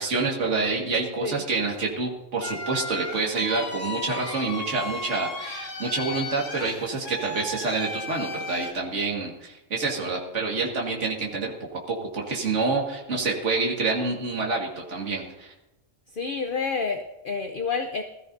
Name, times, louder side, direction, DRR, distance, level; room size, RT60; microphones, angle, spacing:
voice 1, 0.0-15.5, right 3 dB, 70° right, -1 dB, 2.2 m, -27 dB
sound 1, 2.4-8.7, left 2 dB, 70° left, 2.0 m, -35 dB
voice 2, 16.1-18.0, left 5 dB, 45° left, 6 dB, 0.9 m, -29 dB
21.0 x 14.0 x 2.7 m, 0.99 s
omnidirectional pair, 1.3 m